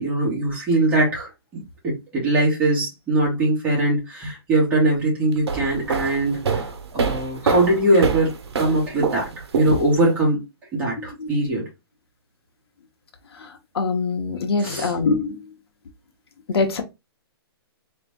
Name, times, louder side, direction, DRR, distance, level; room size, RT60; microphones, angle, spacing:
voice 1, 0.0-8.3 8.6-10.4 10.7-11.6 14.6-14.9, right 2 dB, 10° right, 2.1 m, -21 dB
sound 1, 5.3-10.2, right 5 dB, 85° right, 1.1 m, -26 dB
voice 2, 13.7-15.4 16.5-16.8, left 4 dB, 70° left, 1.2 m, -23 dB
3.8 x 3.3 x 3.6 m
hypercardioid pair, 170°, 13 cm